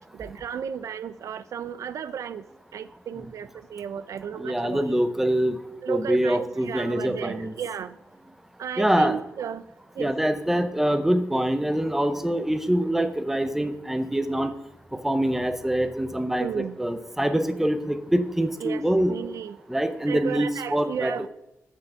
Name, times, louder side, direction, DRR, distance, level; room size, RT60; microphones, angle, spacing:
voice 1, 0.1-2.5 2.7-4.9 5.8-8.0 8.6-9.6 10.0-10.1 16.4-16.8 18.6-19.6 20.1-21.3, right 8 dB, 75° right, 14 dB, 0.4 m, -34 dB
voice 2, 4.4-5.6 5.9-7.5 8.8-9.2 10.0-14.5 15.0-19.2 19.7-21.3, right 1 dB, 5° right, 9 dB, 0.6 m, -24 dB
7.0 x 5.7 x 7.1 m, 0.85 s
wide cardioid pair, 160°, 5 cm